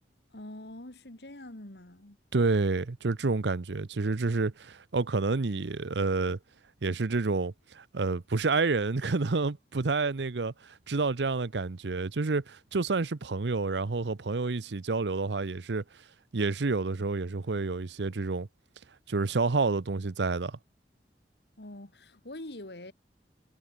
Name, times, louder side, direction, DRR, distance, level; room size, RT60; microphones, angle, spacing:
voice 1, 0.3-2.2 21.6-22.9, left 1 dB, 70° left, 2.5 m, -44 dB
voice 2, 2.3-6.4 6.8-15.8 16.3-18.5 19.1-20.6, right 3 dB, 85° right, 0.8 m, -29 dB
head